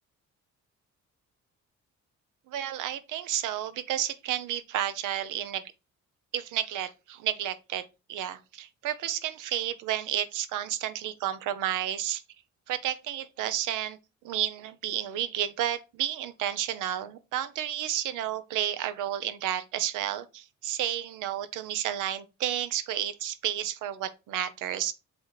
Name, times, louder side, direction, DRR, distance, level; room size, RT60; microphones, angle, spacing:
voice 1, 2.5-5.6 6.3-12.2 12.7-14.0 14.2-24.9, right 11 dB, 90° right, 0.8 m, -31 dB
8.0 x 3.1 x 4.0 m
cardioid pair, 90°, 30 cm